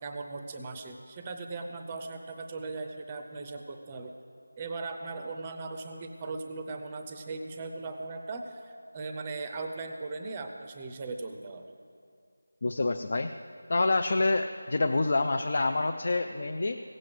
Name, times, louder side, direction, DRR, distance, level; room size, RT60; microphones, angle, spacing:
voice 1, 0.0-4.1 4.6-11.7, right 3 dB, 15° right, 5 dB, 0.6 m, -38 dB
voice 2, 12.6-13.3 13.7-16.8, left 2 dB, 35° left, 6 dB, 0.4 m, -27 dB
16.5 x 7.6 x 7.8 m, 2.3 s
figure-of-eight pair, 175°, 0 cm